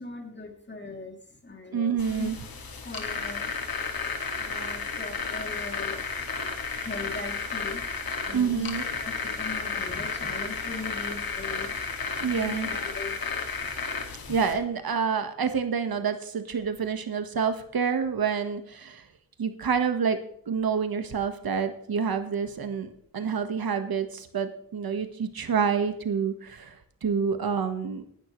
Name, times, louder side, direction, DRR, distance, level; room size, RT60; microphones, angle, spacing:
voice 1, 0.0-2.3 2.7-3.5 4.4-6.0 6.7-7.9 8.2-11.8 12.3-13.3 13.6-13.7 14.3-14.4, left 3 dB, 30° left, 2 dB, 3.0 m, -39 dB
voice 2, 1.7-2.4 8.3-8.8 12.2-12.7 14.3-19.1 19.4-20.2 20.5-28.0, right 6 dB, 85° right, 8 dB, 1.5 m, -28 dB
sound 1, 2.0-14.5, left 5 dB, 85° left, 2.3 m, -33 dB
18.5 x 12.0 x 3.2 m, 0.64 s
wide cardioid pair, 95°, 35 cm